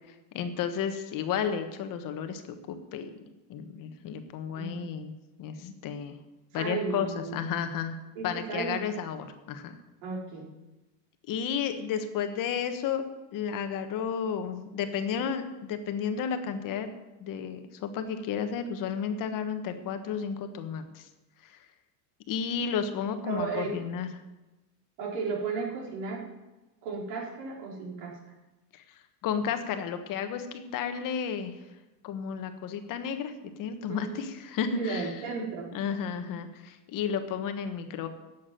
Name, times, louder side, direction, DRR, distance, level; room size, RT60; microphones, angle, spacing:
voice 1, 0.3-2.4 2.7-3.2 3.5-5.1 5.4-6.2 6.5-7.9 8.2-9.8 11.3-16.9 17.2-21.1 21.4-21.6 22.3-24.1 28.7-28.8 29.2-31.5 32.0-33.3 33.6-35.1 35.7-38.1, left 7 dB, 40° left, 8 dB, 1.3 m, -32 dB
voice 2, 4.5-4.9 6.5-7.6 8.2-8.9 10.0-10.5 23.3-23.8 25.0-26.2 26.8-28.2 33.9-34.1 34.8-35.7, right 4 dB, 70° right, -1 dB, 4.4 m, -34 dB
11.0 x 7.3 x 9.2 m, 1.1 s
supercardioid pair, 130°, 48 cm